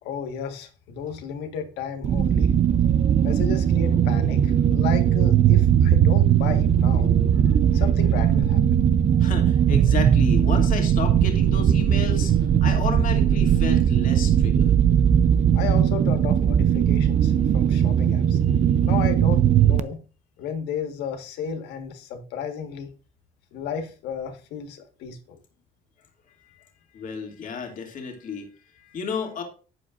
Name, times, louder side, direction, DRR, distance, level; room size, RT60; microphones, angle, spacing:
voice 1, 0.0-2.5 3.2-8.8 15.5-18.4 18.8-20.0 20.4-22.9 23.5-25.4, left 7 dB, 85° left, 1.6 m, -33 dB
sound 1, 2.0-19.8, right 9 dB, 45° right, 0.6 m, -19 dB
voice 2, 9.2-14.8 26.9-28.5 28.7-29.4, left 6 dB, 50° left, 2.6 m, -32 dB
12.0 x 8.3 x 2.6 m
cardioid pair, 110°, 17 cm